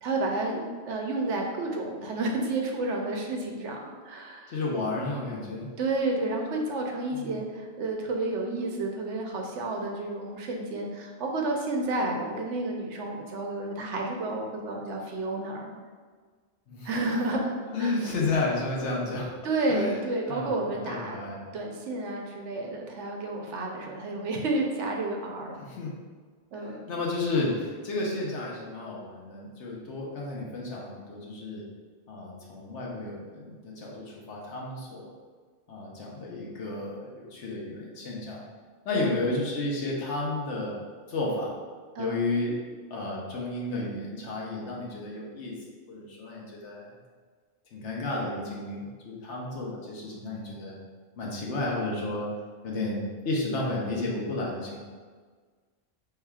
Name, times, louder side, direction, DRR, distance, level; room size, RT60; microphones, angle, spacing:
voice 1, 0.0-4.5 5.8-15.7 16.8-18.1 19.4-21.2 21.5-25.6 26.5-26.8 38.9-39.2 41.9-42.2, right 2 dB, 80° right, 1 dB, 1.0 m, -31 dB
voice 2, 4.5-5.7 7.1-7.3 16.7-16.9 17.7-19.3 19.7-20.0 20.3-20.6 20.8-21.5 25.6-25.9 26.5-31.6 32.1-35.1 35.7-38.4 38.8-40.8 41.1-41.5 42.0-42.6 42.9-45.6 45.9-46.9 47.7-50.8 51.2-52.3 52.6-54.8, left 2 dB, 75° left, -3 dB, 1.2 m, -32 dB
5.6 x 3.4 x 2.3 m, 1.5 s
omnidirectional pair, 1.2 m